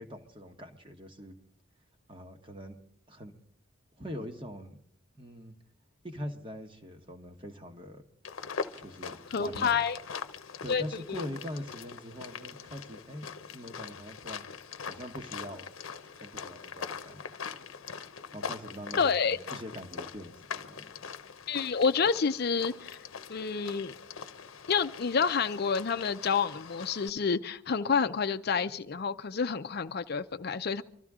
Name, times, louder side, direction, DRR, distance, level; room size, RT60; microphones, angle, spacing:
voice 1, 0.0-1.4 2.1-2.8 3.1-3.3 4.0-4.8 5.1-5.5 6.0-8.0 8.8-9.8 10.6-14.4 14.8-15.7 16.1-17.3 18.3-21.0, equal, 25° right, 1.2 m, -43 dB
sound 1, 8.2-27.1, left 6 dB, 90° left, 0.8 m, -42 dB
voice 2, 9.3-10.0 10.7-10.8 11.1-11.2 19.0-19.4 21.5-23.0 23.3-24.0 24.7-30.8, left 5 dB, 55° left, 0.5 m, -28 dB
25.0 x 13.5 x 3.6 m
head